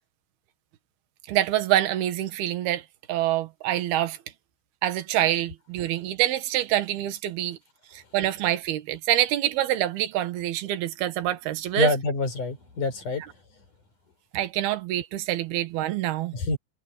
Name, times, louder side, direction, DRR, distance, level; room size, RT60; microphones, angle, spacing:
voice 1, 1.3-4.2 4.8-7.6 7.9-11.9 14.3-16.3, right 13 dB, 75° right, 3.4 m, -26 dB
voice 2, 11.8-13.2 16.3-16.6, left 3 dB, 50° left, 6.1 m, -26 dB
omnidirectional pair, 4.7 m